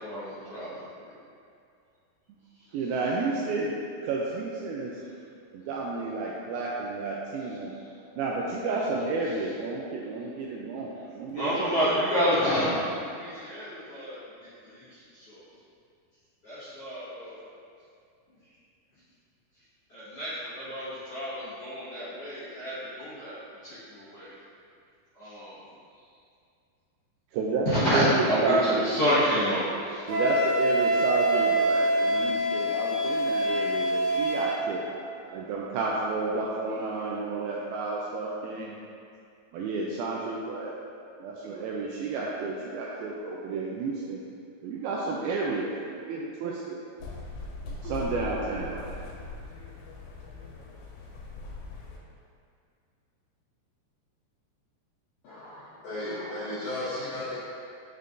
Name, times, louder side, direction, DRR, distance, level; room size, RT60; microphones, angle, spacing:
voice 1, 0.0-0.8 11.3-14.2 14.6-14.8 15.1-15.4 16.4-17.4 19.9-23.4 23.6-24.3 25.1-25.6 27.7-30.1 33.7-33.8, equal, 55° left, -14 dB, 1.7 m, -29 dB
voice 2, 2.7-3.8 4.0-5.0 5.5-7.7 8.2-11.6 27.3-28.9 29.6-38.8 39.5-40.7 41.2-44.2 44.6-46.8 47.8-49.1, right 3 dB, 85° right, -3 dB, 2.2 m, -31 dB
Wind instrument woodwind instrument, 30.1-34.6, right 1 dB, 65° right, 3.3 m, -25 dB
sound 1, 47.0-52.0, left 3 dB, 90° left, 2.9 m, -40 dB
voice 3, 55.2-57.5, left 1 dB, 75° left, -10 dB, 1.7 m, -35 dB
6.7 x 6.6 x 2.5 m, 2.4 s
omnidirectional pair, 4.8 m